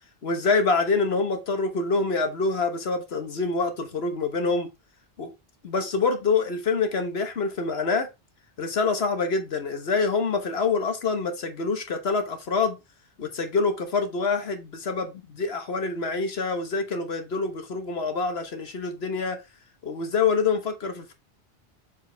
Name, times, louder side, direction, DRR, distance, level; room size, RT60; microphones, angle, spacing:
voice 1, 0.2-4.7 5.2-5.3 5.6-8.1 8.6-12.8 13.2-19.4 19.8-21.1, left 4 dB, 80° left, 1.5 m, -26 dB
6.7 x 4.9 x 3.3 m
omnidirectional pair, 1.0 m